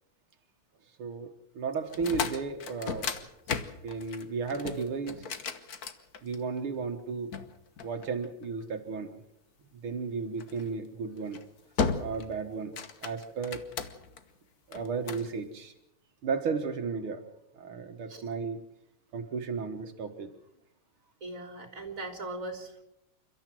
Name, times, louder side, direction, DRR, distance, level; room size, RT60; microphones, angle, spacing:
voice 1, 1.0-3.1 3.8-5.3 6.2-7.4 7.8-9.1 9.8-11.4 12.0-12.7 13.0-13.7 14.7-15.7 16.2-17.2 17.6-18.6 19.1-20.3, right 5 dB, 85° right, 4 dB, 2.3 m, -34 dB
sound 1, 1.9-6.6 7.3-8.6 10.4-10.7 11.2-11.4 11.8-12.3 12.6-14.2 14.7-15.3, left 5 dB, 50° left, 1.6 m, -35 dB
voice 2, 21.2-22.8, right 2 dB, 40° right, 5 dB, 3.8 m, -39 dB
29.0 x 13.0 x 7.6 m, 0.85 s
omnidirectional pair, 2.3 m